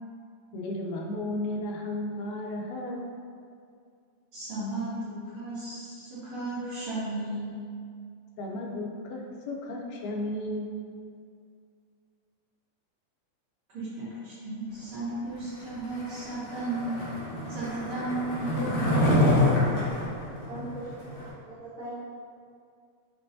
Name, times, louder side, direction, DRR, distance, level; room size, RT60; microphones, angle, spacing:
voice 1, 0.5-3.1 8.4-10.8, left 1 dB, 85° left, 0 dB, 2.1 m, -34 dB
voice 2, 4.3-7.6 13.7-17.0 17.5-19.3, right 2 dB, 55° right, -11 dB, 1.6 m, -34 dB
Skateboard, 15.8-21.3, left 1 dB, 65° left, 1.2 m, -27 dB
voice 3, 20.5-21.9, right 1 dB, 75° right, -11 dB, 1.1 m, -41 dB
6.7 x 3.0 x 2.6 m, 2.3 s
omnidirectional pair, 3.6 m